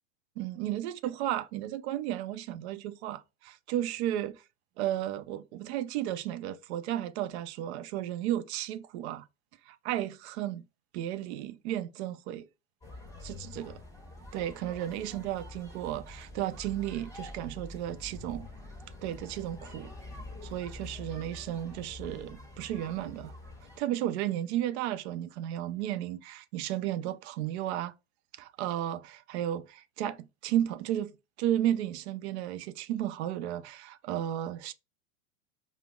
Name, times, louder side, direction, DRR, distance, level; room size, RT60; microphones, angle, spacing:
voice 1, 0.4-4.4 4.8-9.3 9.7-10.6 10.9-12.5 13.2-13.8 14.3-18.5 19.0-19.9 20.4-23.3 23.8-27.9 28.3-34.7, right 12 dB, 65° right, 0.5 m, -33 dB
sound 1, 12.8-23.8, left 2 dB, 10° left, 1.5 m, -46 dB
5.1 x 2.0 x 2.3 m
hypercardioid pair, 115°, 36 cm